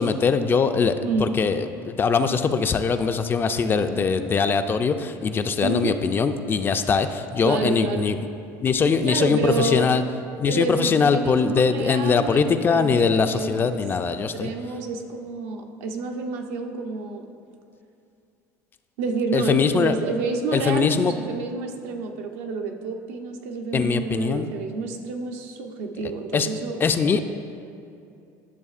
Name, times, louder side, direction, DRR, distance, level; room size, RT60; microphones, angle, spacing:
voice 1, 0.0-8.2 8.6-10.0 10.4-14.5 19.3-20.0 20.5-21.1 23.7-24.5 26.3-26.5 26.8-27.2, left 5 dB, 25° left, 9 dB, 0.3 m, -22 dB
voice 2, 1.0-1.4 3.6-3.9 5.6-5.9 7.4-8.1 9.0-9.9 10.4-13.8 14.3-17.3 19.0-27.2, right 3 dB, 85° right, 3 dB, 0.6 m, -29 dB
11.0 x 6.5 x 2.4 m, 2.5 s
supercardioid pair, 110°, 8 cm